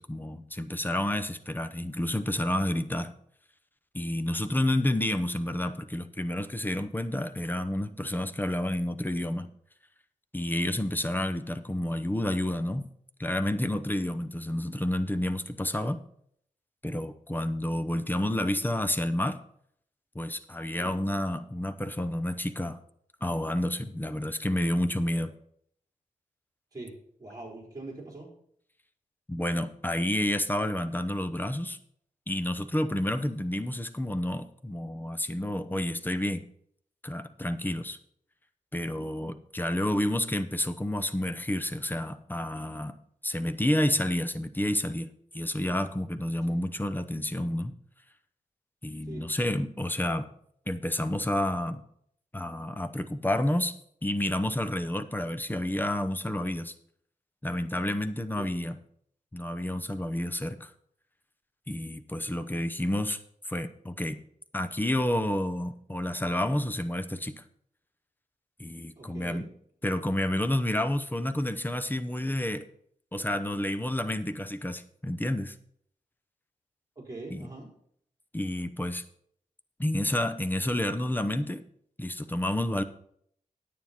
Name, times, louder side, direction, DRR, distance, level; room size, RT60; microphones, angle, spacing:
voice 1, 0.0-3.1 3.9-9.5 10.3-12.9 13.2-16.0 16.8-19.4 20.1-22.8 23.2-25.3 29.3-31.8 32.3-36.4 37.0-38.0 38.7-42.9 43.2-45.1 45.3-47.7 48.8-50.3 50.7-51.8 52.3-53.7 54.0-56.7 57.4-58.8 59.3-60.7 61.7-63.2 63.5-64.2 64.5-67.3 68.6-69.4 69.8-72.6 73.1-75.5 77.3-77.5 78.3-79.0 79.8-81.6 82.0-82.8, left 1 dB, 15° left, 10 dB, 0.8 m, -30 dB
voice 2, 27.2-28.3 45.7-45.8 46.5-46.6 49.0-49.3 58.4-58.5 69.0-69.5 77.0-77.7, right 2 dB, 25° right, -2 dB, 4.2 m, -43 dB
9.6 x 9.4 x 4.4 m, 0.65 s
wide cardioid pair, 100°, 14 cm